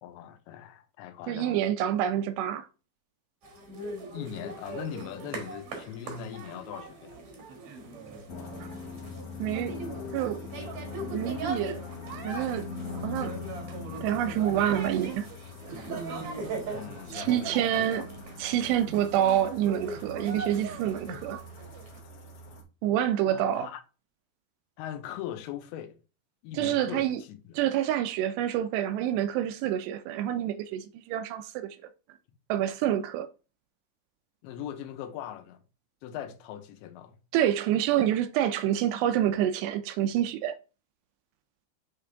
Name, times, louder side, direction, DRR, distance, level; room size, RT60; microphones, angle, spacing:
voice 1, 0.0-1.6 4.1-7.2 16.7-18.1 23.3-23.8 24.8-26.0 26.4-27.6 34.4-35.6 36.0-37.2, left 10 dB, 85° left, 3.0 m, -40 dB
voice 2, 1.3-2.7 9.4-9.8 10.1-10.4 11.0-11.8 12.2-12.7 13.0-13.4 14.0-15.3 17.1-18.1 18.4-21.4 22.8-23.7 26.5-27.2 27.6-31.8 32.5-33.3 37.3-40.6, right 11 dB, 85° right, 2.5 m, -27 dB
sound 1, 3.4-22.0, right 3 dB, 65° right, 1.8 m, -40 dB
sound 2, 8.3-22.6, left 4 dB, 65° left, 1.7 m, -42 dB
8.5 x 3.7 x 3.4 m
omnidirectional pair, 5.1 m